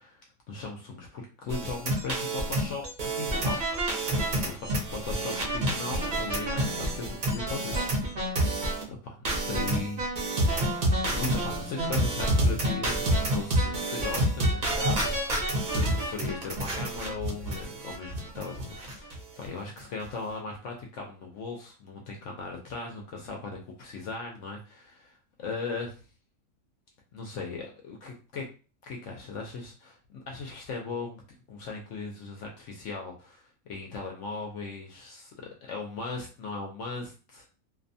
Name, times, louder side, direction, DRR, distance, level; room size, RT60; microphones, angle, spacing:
voice 1, 0.0-3.6 4.3-4.7 5.0-7.8 8.9-10.0 10.9-13.1 13.3-15.1 15.6-25.9 27.1-28.5 28.8-31.2 31.5-35.4 35.6-37.4, left 4 dB, 65° left, 1 dB, 0.8 m, -38 dB
sound 1, 1.5-8.8 9.3-19.2 19.4-19.5 19.8-20.1, right 1 dB, 45° right, 0.6 m, -28 dB
2.6 x 2.2 x 2.6 m, 0.35 s
omnidirectional pair, 1.5 m